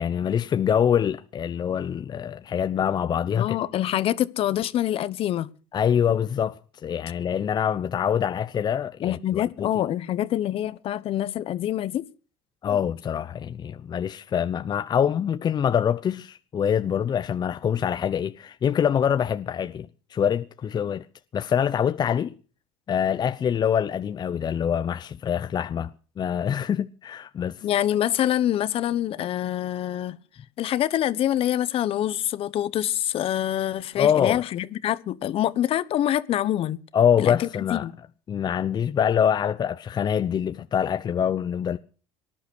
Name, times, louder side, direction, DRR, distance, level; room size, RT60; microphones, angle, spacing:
voice 1, 0.0-3.6 5.7-9.7 12.6-21.1 21.3-22.3 22.9-25.9 26.2-27.6 34.0-34.4 36.9-37.8 38.3-41.8, left 8 dB, 40° left, 0.8 m, -25 dB
voice 2, 3.3-5.5 9.0-12.0 12.7-12.8 27.6-30.2 30.6-36.8 37.2-37.9, left 12 dB, 55° left, 1.1 m, -25 dB
19.0 x 11.0 x 6.4 m
supercardioid pair, 100°, 11 cm